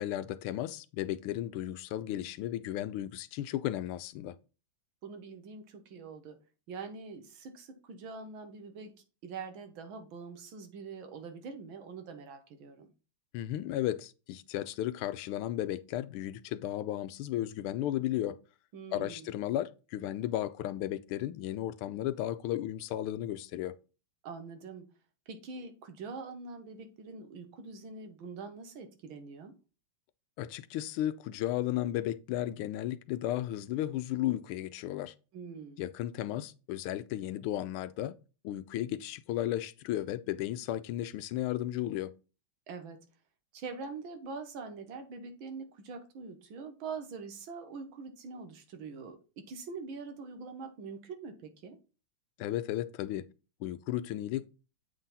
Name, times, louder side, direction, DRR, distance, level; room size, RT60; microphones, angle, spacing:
voice 1, 0.0-4.3 13.3-18.4 18.9-23.7 30.4-35.1 35.8-38.1 38.4-42.1 52.4-53.2 53.6-54.5, left 13 dB, 90° left, 1.5 m, -34 dB
voice 2, 5.0-6.4 6.7-8.9 9.2-12.9 18.7-19.3 24.2-24.8 25.3-29.5 35.3-35.8 42.7-43.0 43.5-51.8, right 4 dB, 75° right, 1.8 m, -44 dB
7.8 x 3.8 x 4.1 m
omnidirectional pair, 2.3 m